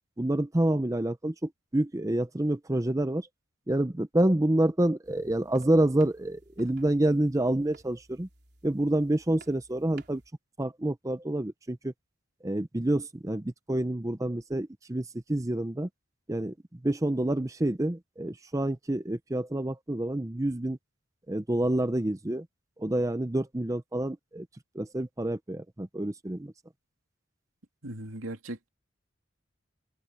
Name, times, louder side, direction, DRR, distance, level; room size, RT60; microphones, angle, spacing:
voice 1, 0.2-3.3 3.7-8.3 8.6-10.2 10.6-11.9 12.4-15.9 16.3-20.8 21.3-22.5 22.8-24.5 24.7-26.5, right 1 dB, 15° right, 0.6 m, -28 dB
sound 1, 5.0-10.3, right 3 dB, 55° right, 4.0 m, -57 dB
voice 2, 27.8-28.7, right 1 dB, 85° right, 3.0 m, -38 dB
head